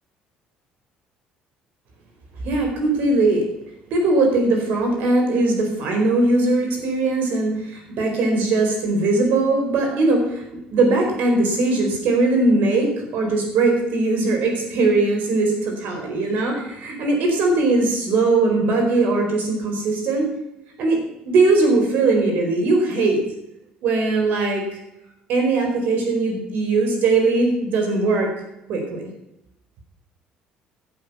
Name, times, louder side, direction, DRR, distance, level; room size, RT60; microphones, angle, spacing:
voice 1, 2.4-3.4 3.9-10.4 10.7-20.2 20.8-23.2 23.8-24.6 25.3-28.3 28.7-29.1, right 3 dB, 65° right, 2 dB, 4.4 m, -20 dB
11.5 x 7.9 x 6.8 m, 0.87 s
cardioid pair, 100°, 3 cm